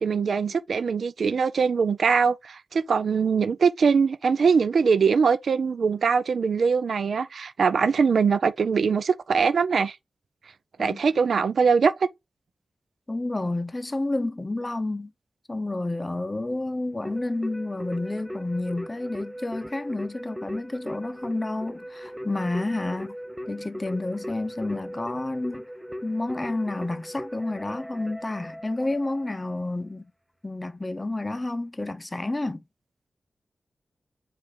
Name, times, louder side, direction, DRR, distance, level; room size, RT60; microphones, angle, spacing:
voice 1, 0.0-10.0 10.8-12.1, right 5 dB, 75° right, 0.4 m, -22 dB
voice 2, 13.1-15.1 15.5-23.2 23.5-25.7 26.0-30.1 30.4-32.6, left 2 dB, 30° left, 0.6 m, -30 dB
Keyboard (musical), 17.0-29.5, equal, 10° right, 0.7 m, -39 dB
4.9 x 2.5 x 3.8 m
cardioid pair, 45°, 0 cm